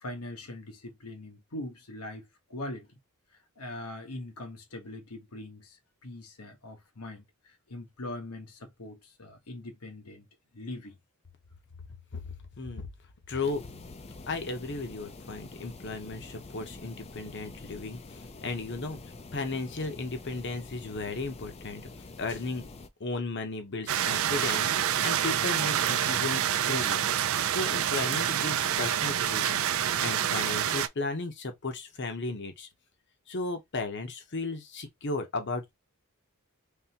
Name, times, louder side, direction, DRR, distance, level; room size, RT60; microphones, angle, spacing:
voice 1, 0.0-3.0 3.6-10.3 10.5-11.0, left 1 dB, 90° left, 1.2 m, -42 dB
voice 2, 12.6-12.9 13.3-13.6 14.3-19.0 19.3-21.9 22.2-22.6 23.0-24.7 25.0-27.0 27.5-29.6 30.0-32.7 33.3-35.7, left 3 dB, 55° left, 0.9 m, -35 dB
sound 1, 13.4-22.9, left 3 dB, 30° left, 0.5 m, -46 dB
sound 2, 23.9-30.9, right 10 dB, 65° right, 0.4 m, -27 dB
3.6 x 3.3 x 2.9 m
head